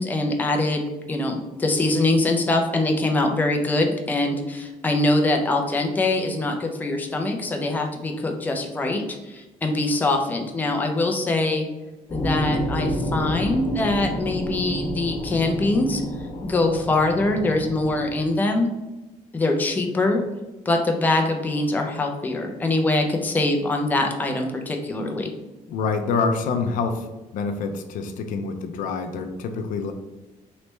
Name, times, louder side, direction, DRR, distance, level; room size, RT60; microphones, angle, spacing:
voice 1, 0.0-11.7 12.1-16.0 16.4-18.7 19.3-20.2 20.7-25.3, left 2 dB, 15° left, 2 dB, 0.4 m, -23 dB
sound 1, 12.1-18.3, equal, 35° left, 1.0 m, -29 dB
voice 2, 25.7-27.1 27.3-29.9, left 4 dB, 80° left, 6 dB, 0.5 m, -26 dB
3.2 x 3.2 x 3.0 m, 1.1 s
cardioid pair, 155°, 14 cm